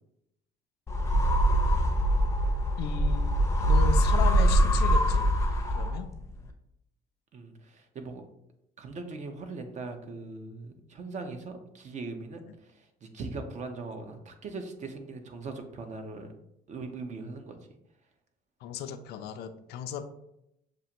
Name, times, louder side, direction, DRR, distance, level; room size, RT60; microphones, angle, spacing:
sound 1, 0.9-6.2, equal, 15° left, 0.6 m, -23 dB
voice 1, 2.8-3.4 3.7-5.3 5.7-6.1 18.6-20.0, left 7 dB, 75° left, 9 dB, 0.5 m, -35 dB
voice 2, 7.3-8.3 8.8-16.3 16.7-17.6, right 3 dB, 45° right, 6 dB, 0.7 m, -40 dB
6.7 x 2.5 x 2.9 m, 0.80 s
cardioid pair, 110°, 17 cm